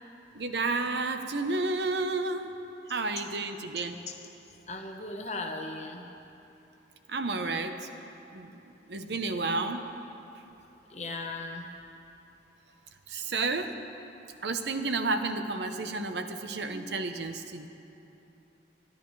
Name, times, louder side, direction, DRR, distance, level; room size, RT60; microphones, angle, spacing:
voice 1, 0.3-2.5 2.9-4.0 7.1-7.9 8.3-8.5 8.9-9.9 13.1-13.7 14.4-17.7, right 3 dB, 75° right, 7 dB, 0.8 m, -31 dB
voice 2, 4.7-6.0 10.9-11.7, left 2 dB, 40° left, 3 dB, 1.0 m, -37 dB
24.5 x 10.5 x 3.2 m, 2.9 s
head